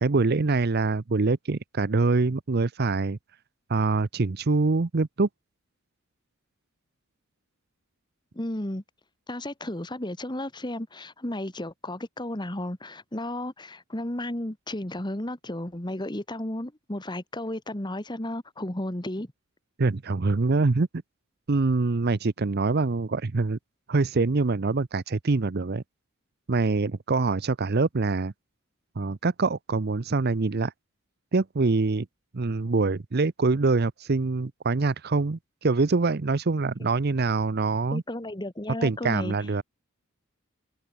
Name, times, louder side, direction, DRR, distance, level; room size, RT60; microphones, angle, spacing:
voice 1, 0.0-3.2 3.7-5.3 19.8-20.9 21.5-23.6 23.9-25.8 26.5-28.3 29.0-30.7 31.3-32.1 32.3-38.0 38.8-39.6, right 3 dB, 50° right, 0.7 m, -24 dB
voice 2, 8.3-8.8 9.3-19.3 36.8-36.9 37.9-39.3, left 1 dB, 20° left, 1.7 m, -33 dB
head